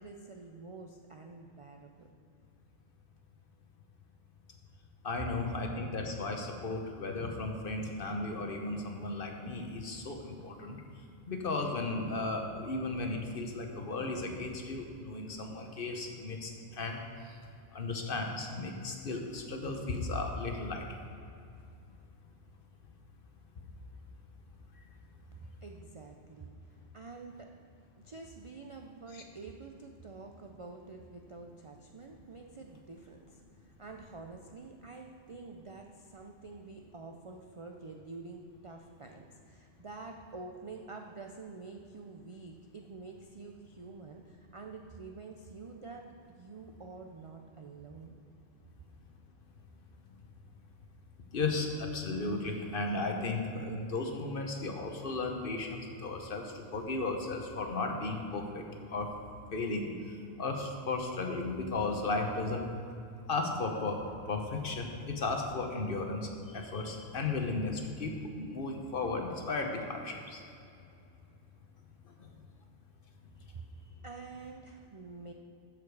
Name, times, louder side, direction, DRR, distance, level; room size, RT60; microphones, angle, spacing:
voice 1, 0.0-2.1 5.2-5.3 25.3-27.5 28.0-48.2 73.4-75.3, right 3 dB, 60° right, 2 dB, 0.3 m, -48 dB
voice 2, 5.0-10.8 11.3-17.0 17.7-20.8 29.1-29.2 51.3-58.6 58.9-59.1 59.5-59.9 60.4-62.7 63.3-64.0 64.3-70.4, left 3 dB, 50° left, 3 dB, 1.0 m, -35 dB
13.0 x 5.1 x 4.7 m, 2.6 s
omnidirectional pair, 1.3 m